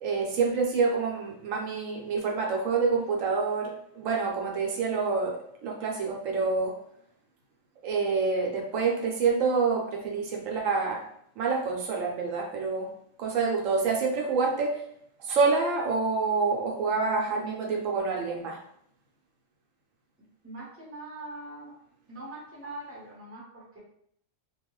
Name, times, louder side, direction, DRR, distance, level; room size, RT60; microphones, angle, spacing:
voice 1, 0.0-6.7 7.8-11.0 11.4-12.9 13.2-14.8 15.2-18.6, right 4 dB, 80° right, 0 dB, 1.0 m, -27 dB
voice 2, 20.4-21.7 22.1-23.8, right 2 dB, 10° right, -6 dB, 0.8 m, -42 dB
2.4 x 2.3 x 3.0 m, 0.68 s
omnidirectional pair, 1.3 m